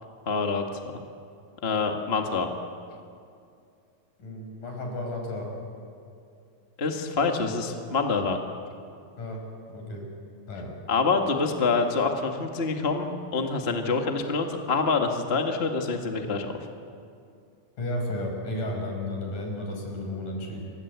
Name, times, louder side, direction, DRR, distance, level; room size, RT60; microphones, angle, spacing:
voice 1, 0.2-0.8 1.6-2.5 6.8-8.4 10.9-16.6, left 4 dB, 30° left, 3 dB, 1.2 m, -26 dB
voice 2, 4.2-5.5 9.2-9.4 9.7-10.1 10.5-10.7 17.8-20.6, left 1 dB, 60° left, 1 dB, 7.2 m, -33 dB
29.0 x 24.5 x 8.2 m, 2.4 s
omnidirectional pair, 4.1 m